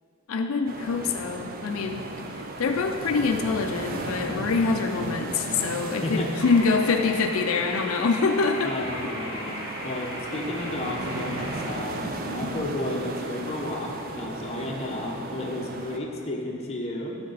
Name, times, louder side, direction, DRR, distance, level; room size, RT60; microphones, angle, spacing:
voice 1, 0.3-2.1 2.6-8.7 9.0-9.1, left 4 dB, 85° left, 5 dB, 0.4 m, -25 dB
sound 1, 0.7-16.0, right 2 dB, 45° right, 0.5 m, -35 dB
voice 2, 6.0-6.4 7.5-7.8 8.6-9.6 9.8-17.2, left 1 dB, 30° left, -1 dB, 0.8 m, -32 dB
sound 2, 6.4-11.6, equal, 15° right, 1.4 m, -37 dB
12.0 x 4.3 x 4.0 m, 2.7 s
head